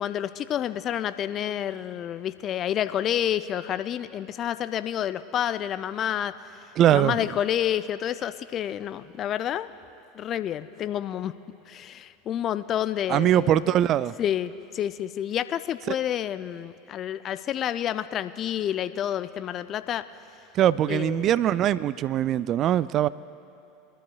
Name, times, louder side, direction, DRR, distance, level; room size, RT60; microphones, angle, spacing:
voice 1, 0.0-6.4 6.9-9.7 10.1-11.3 11.7-13.7 14.2-20.1 20.9-21.4, left 10 dB, 40° left, 13 dB, 0.4 m, -29 dB
voice 2, 6.8-7.2 13.1-14.1 15.9-16.0 20.5-23.1, right 11 dB, 40° right, 17 dB, 0.3 m, -22 dB
23.5 x 12.0 x 2.3 m, 2.8 s
figure-of-eight pair, 80°, 0 cm